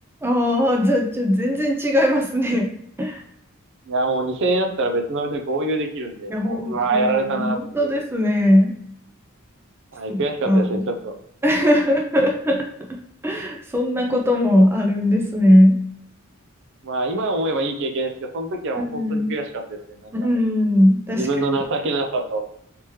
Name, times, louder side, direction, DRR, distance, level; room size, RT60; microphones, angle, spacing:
voice 1, 0.2-2.7 3.0-3.2 6.3-8.7 10.1-10.8 11.4-12.7 13.2-15.8 18.8-19.3 20.1-21.3, left 1 dB, 10° right, 1 dB, 0.4 m, -19 dB
voice 2, 3.9-7.9 9.9-11.1 16.8-20.3 21.1-22.4, right 2 dB, 60° right, 4 dB, 0.5 m, -25 dB
3.4 x 2.9 x 3.2 m, 0.72 s
head